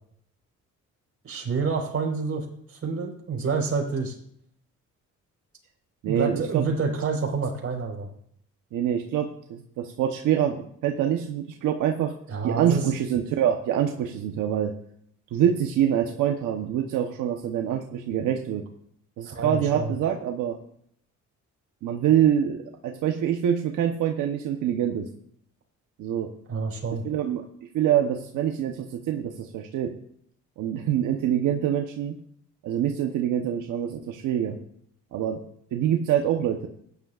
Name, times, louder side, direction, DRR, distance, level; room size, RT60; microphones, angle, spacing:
voice 1, 1.2-4.1 6.0-8.1 12.3-12.8 19.3-20.0 26.5-27.0, right 5 dB, 50° right, 1 dB, 4.4 m, -28 dB
voice 2, 6.0-6.6 8.7-12.1 12.4-14.7 15.3-18.6 19.2-20.6 21.8-25.1 26.0-26.3 27.0-27.4 27.7-30.0 30.6-32.2 32.6-34.6 35.1-35.4 35.7-36.7, right 10 dB, 85° right, 3 dB, 1.1 m, -25 dB
16.0 x 10.5 x 2.5 m, 0.66 s
cardioid pair, 90°, 30 cm